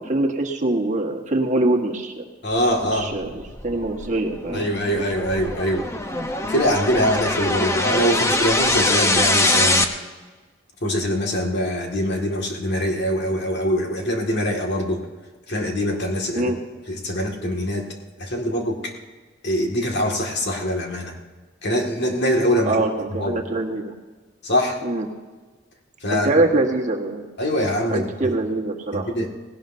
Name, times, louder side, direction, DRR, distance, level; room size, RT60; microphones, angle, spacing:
voice 1, 0.0-2.2 2.9-4.6 16.3-16.6 22.6-23.9 24.8-25.0 26.1-27.3 27.9-29.1, right 2 dB, 40° right, 1 dB, 1.4 m, -23 dB
voice 2, 2.4-3.1 4.5-5.9 6.5-9.9 10.8-15.0 15.5-16.5 16.9-17.9 18.2-18.9 19.4-21.2 21.6-22.8 23.2-23.4 24.4-24.8 26.0-26.3 27.4-28.3 28.9-29.3, equal, 60° left, 1 dB, 2.0 m, -23 dB
sound 1, 3.1-9.8, left 2 dB, 15° left, 0.7 m, -23 dB
18.5 x 17.5 x 2.7 m, 1.3 s
head